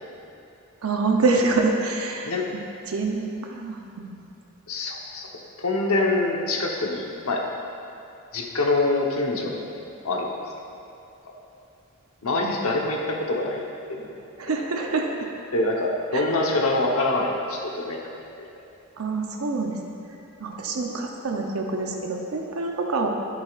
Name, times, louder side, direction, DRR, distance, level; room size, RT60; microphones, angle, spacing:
voice 1, 0.8-2.3 2.8-4.2 12.4-12.6 14.4-15.3 16.1-16.2 19.0-19.8 20.4-23.1, right 3 dB, 80° right, 1 dB, 0.7 m, -26 dB
voice 2, 4.7-5.3 5.6-7.4 8.3-9.7 10.0-10.3 12.2-13.6 13.9-14.1 15.5-18.0 18.4-18.5, left 2 dB, 80° left, -1 dB, 1.0 m, -25 dB
10.5 x 8.1 x 2.5 m, 2.7 s
head